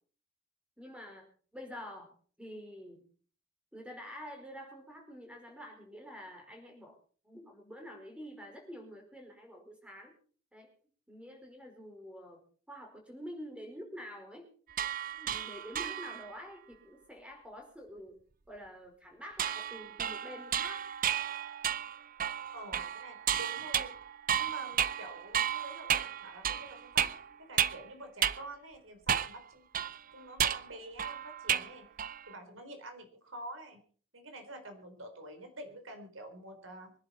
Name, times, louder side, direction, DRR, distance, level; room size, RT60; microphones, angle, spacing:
voice 1, 0.8-1.2 1.5-3.1 3.7-7.0 7.2-10.1 10.5-10.7 11.1-14.5 15.2-18.2 18.5-20.9, equal, 5° right, 2 dB, 4.9 m, -47 dB
sound 1, 14.7-16.3 19.4-27.9 28.2-28.4 29.1-29.4 29.7-31.7 32.0-32.3, right 9 dB, 40° right, 0.6 m, -33 dB
voice 2, 22.5-24.0 24.4-29.7 30.1-31.9 32.3-33.8 34.1-36.9, right 1 dB, 75° right, 6 dB, 4.2 m, -48 dB
24.5 x 11.0 x 4.3 m, 0.43 s
head